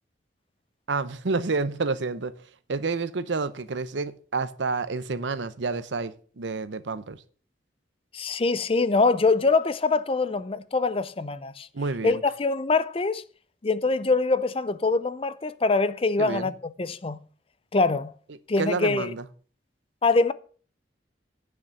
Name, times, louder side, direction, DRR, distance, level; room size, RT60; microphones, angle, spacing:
voice 1, 0.9-2.3 2.7-7.2 11.7-12.2 16.2-16.5 18.3-19.2, right 4 dB, 75° right, 0.7 m, -29 dB
voice 2, 8.1-11.7 12.0-13.2 13.6-16.5 16.8-17.2 17.7-18.1 18.5-19.1 20.0-20.3, left 3 dB, 30° left, 0.5 m, -24 dB
9.5 x 5.9 x 6.5 m
head